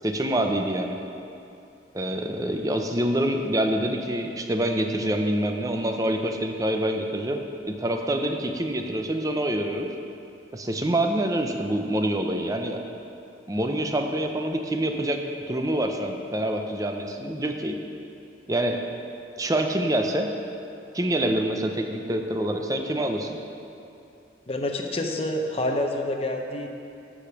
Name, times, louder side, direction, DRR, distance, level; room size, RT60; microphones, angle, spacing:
voice 1, 0.0-1.0 1.9-9.9 10.5-12.8 13.5-15.2 15.5-17.8 18.5-18.8 19.4-20.3 20.9-23.4, right 1 dB, 20° right, 4 dB, 0.6 m, -26 dB
voice 2, 24.5-26.7, left 1 dB, 35° left, 3 dB, 0.7 m, -27 dB
13.5 x 5.1 x 5.8 m, 2.7 s
head